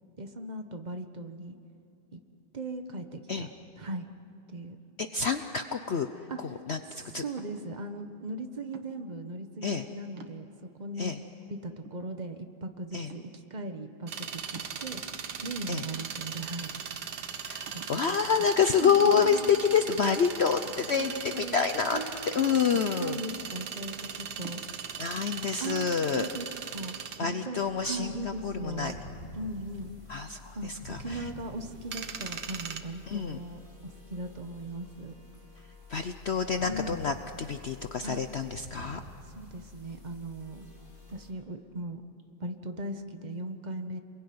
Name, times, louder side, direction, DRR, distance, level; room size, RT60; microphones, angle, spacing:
voice 1, 0.2-1.6 2.1-2.2 2.5-3.5 3.8-4.1 4.5-4.8 6.3-6.6 6.9-10.5 10.8-11.1 11.5-15.0 15.4-16.7 17.7-18.2 18.7-19.5 21.0-21.6 21.9-22.6 23.0-24.6 25.6-29.0 29.3-29.9 30.5-30.7 31.0-35.1 36.6-37.0 38.0-38.2 39.3-40.7 41.1-42.0 42.4-44.0, right 2 dB, 25° right, 6 dB, 1.2 m, -38 dB
voice 2, 5.0-6.1 6.4-7.2 9.6-9.9 11.0-11.2 12.9-13.1 15.7-15.8 17.4-22.0 22.3-23.2 25.0-26.3 27.2-28.9 30.1-31.3 33.1-33.4 35.9-39.0, left 6 dB, 65° left, 8 dB, 0.6 m, -28 dB
sound 1, 6.0-6.5 7.4-7.8 8.7-9.2 9.8-9.9 10.2-10.8 11.4-11.5 11.9-12.6 13.1-13.5 14.6-15.3 16.0-16.6 17.0-17.1 17.7-18.1 19.2-19.7 20.7-21.6 22.7-23.3 24.4-24.7, right 5 dB, 80° right, 2.2 m, -50 dB
sound 2, 14.1-32.8, right 7 dB, 55° right, 1.7 m, -39 dB
sound 3, 27.6-41.3, left 2 dB, 20° left, 4.7 m, -49 dB
28.0 x 22.0 x 9.6 m, 2.8 s
omnidirectional pair, 2.2 m